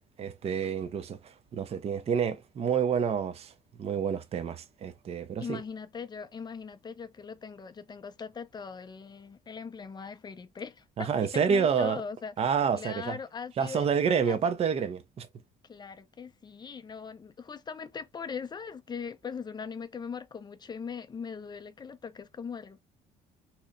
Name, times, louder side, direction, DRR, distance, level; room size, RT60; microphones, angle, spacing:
voice 1, 0.2-3.5 3.8-5.6 11.0-12.0 12.4-13.2 13.6-15.3, right 7 dB, 35° right, 0.5 m, -28 dB
voice 2, 5.4-12.3 12.8-13.9 14.3-14.4 15.6-22.8, left 6 dB, 25° left, 0.4 m, -40 dB
2.8 x 2.1 x 3.7 m
cardioid pair, 110°, 17 cm